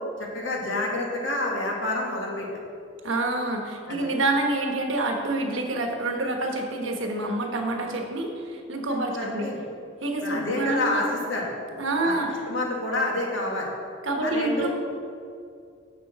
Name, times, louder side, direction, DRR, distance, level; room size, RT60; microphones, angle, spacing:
voice 1, 0.3-2.5 3.9-4.1 8.9-9.6 10.2-11.5 12.0-12.2 12.5-13.7 14.2-14.7, left 2 dB, 75° left, -1 dB, 1.8 m, -28 dB
voice 2, 3.0-9.5 10.0-11.1 11.8-12.4 14.0-14.7, right 2 dB, 85° right, 2 dB, 1.3 m, -27 dB
7.0 x 6.9 x 6.1 m, 2.4 s
head